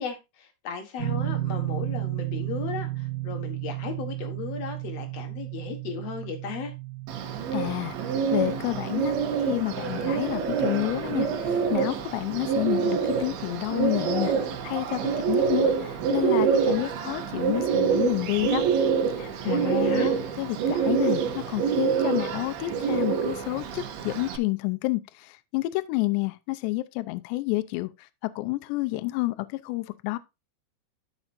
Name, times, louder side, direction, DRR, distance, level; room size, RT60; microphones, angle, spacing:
voice 1, 0.0-6.7 19.4-20.2, left 6 dB, 60° left, 1.7 m, -36 dB
sound 1, 1.0-13.9, right 14 dB, 45° right, 2.8 m, -35 dB
Bird, 7.1-24.4, right 6 dB, 90° right, 3.6 m, -26 dB
voice 2, 7.5-8.0 8.3-9.1 9.5-11.3 11.7-14.3 14.6-15.0 15.3-18.6 19.2-21.2 21.5-27.9 28.4-29.4 29.6-30.2, left 20 dB, 80° left, 2.7 m, -29 dB
13.0 x 5.5 x 2.6 m
omnidirectional pair, 5.1 m